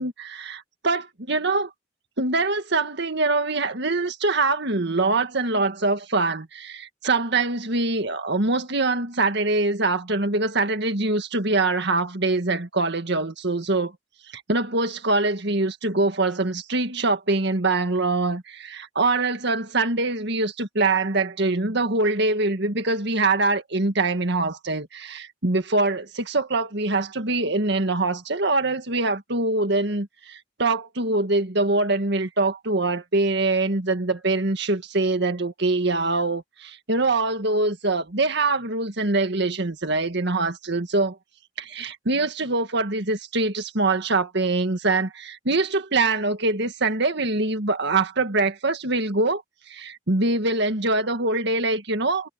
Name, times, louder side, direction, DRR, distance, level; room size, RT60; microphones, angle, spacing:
voice 1, 0.0-1.7 2.2-13.9 14.3-41.2 41.6-49.4 49.7-52.3, right 2 dB, 65° right, 2.0 m, -24 dB
head